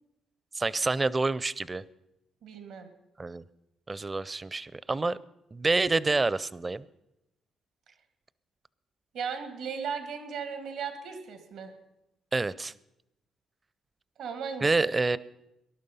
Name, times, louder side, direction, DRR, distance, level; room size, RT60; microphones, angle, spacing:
voice 1, 0.5-1.8 3.2-3.4 3.9-5.2 5.5-6.8 12.3-12.7 14.6-15.2, right 3 dB, 25° right, 19 dB, 0.5 m, -27 dB
voice 2, 2.4-2.9 9.1-11.7 14.2-14.9, right 6 dB, 85° right, 7 dB, 2.3 m, -36 dB
19.0 x 11.5 x 5.5 m, 0.90 s
cardioid pair, 90°, 0 cm